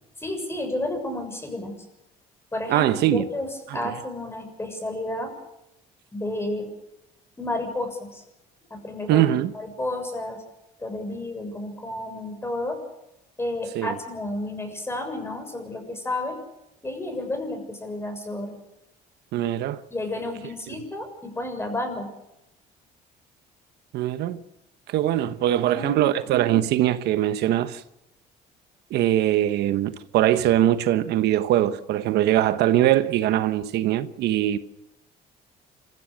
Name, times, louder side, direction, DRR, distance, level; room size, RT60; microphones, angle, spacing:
voice 1, 0.2-1.8 2.5-3.5 3.7-5.3 6.1-6.7 7.4-8.2 8.7-9.3 9.5-10.4 10.8-12.8 13.4-16.4 16.8-18.5 19.9-22.1 25.4-26.2, left 1 dB, 15° left, 7.1 m, -31 dB
voice 2, 2.7-3.3 3.7-3.9 9.1-9.5 13.7-13.9 19.3-19.8 20.7-20.8 23.9-24.4 24.9-27.8 28.9-34.6, right 12 dB, 80° right, 1.2 m, -22 dB
28.0 x 15.5 x 6.4 m
cardioid pair, 110°, 17 cm